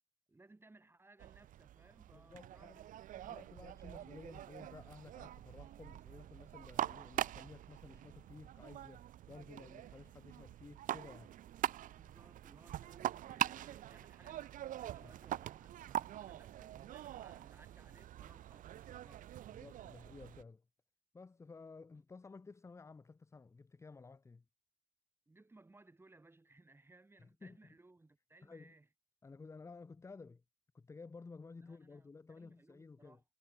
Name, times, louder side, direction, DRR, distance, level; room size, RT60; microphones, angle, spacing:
voice 1, 0.3-2.9 3.1-3.5 11.9-19.4 25.3-28.9 31.6-32.1 32.4-33.2, right 2 dB, 15° right, 5.8 m, -64 dB
sound 1, 1.2-20.4, right 12 dB, 50° right, 0.5 m, -44 dB
voice 2, 2.1-2.8 3.2-11.4 15.0-15.1 19.5-20.6 21.1-24.4 27.2-27.8 28.4-28.7 29.2-30.4 30.7-33.2, left 4 dB, 15° left, 0.7 m, -54 dB
cardioid pair, 110°, 17 cm